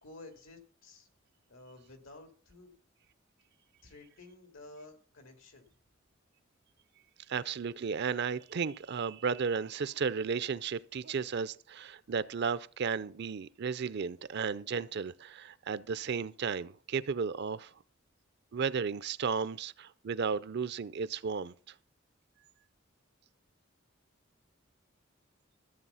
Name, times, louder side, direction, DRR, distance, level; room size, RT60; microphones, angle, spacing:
voice 1, 0.0-1.1 1.5-2.7 3.8-5.7, left 2 dB, 85° left, 2.5 m, -52 dB
voice 2, 7.3-17.7 18.5-21.7, right 5 dB, 55° right, 0.5 m, -34 dB
13.5 x 7.8 x 5.6 m
head